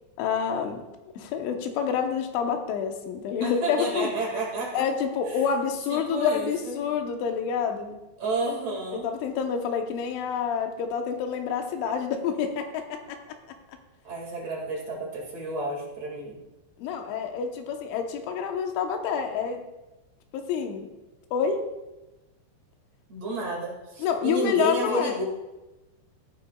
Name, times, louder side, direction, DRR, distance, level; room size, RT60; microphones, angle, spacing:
voice 1, 0.2-0.8 1.2-4.1 4.7-8.0 9.0-13.2 16.8-19.6 20.3-20.9 21.3-21.7 24.0-25.2, left 7 dB, 85° left, 4 dB, 3.5 m, -28 dB
voice 2, 3.4-4.8 5.3-5.4 5.9-6.9 8.2-9.1 14.0-16.4 23.1-25.2, right 2 dB, 45° right, -2 dB, 2.5 m, -31 dB
17.0 x 10.5 x 2.3 m, 1.1 s
omnidirectional pair, 5.3 m